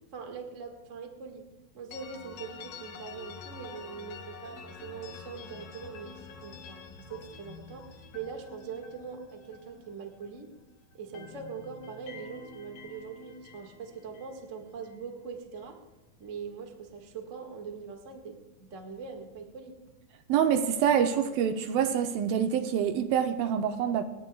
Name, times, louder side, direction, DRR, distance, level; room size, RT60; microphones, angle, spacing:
voice 1, 0.1-1.4 1.7-10.5 10.9-15.8 16.2-19.8, right 6 dB, 40° right, 3 dB, 1.0 m, -42 dB
sound 1, 1.9-10.6 10.9-15.0, left 5 dB, 70° left, 2.8 m, -48 dB
voice 2, 20.3-24.1, right 8 dB, 80° right, 7 dB, 2.4 m, -26 dB
28.0 x 11.0 x 2.3 m, 1.0 s
omnidirectional pair, 4.3 m